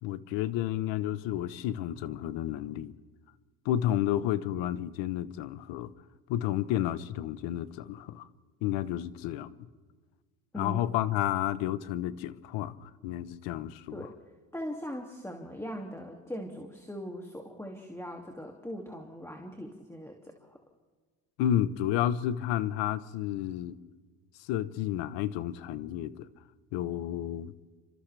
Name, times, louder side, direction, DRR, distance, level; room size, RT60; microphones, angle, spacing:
voice 1, 0.0-2.9 3.6-5.9 6.3-8.3 8.6-9.7 10.6-14.1 21.4-23.7 24.4-26.3 26.7-27.5, left 12 dB, 80° left, 15 dB, 1.1 m, -31 dB
voice 2, 14.5-20.6, equal, 5° left, 1 dB, 2.5 m, -40 dB
30.0 x 26.0 x 3.4 m, 1.5 s
supercardioid pair, 85°, 44 cm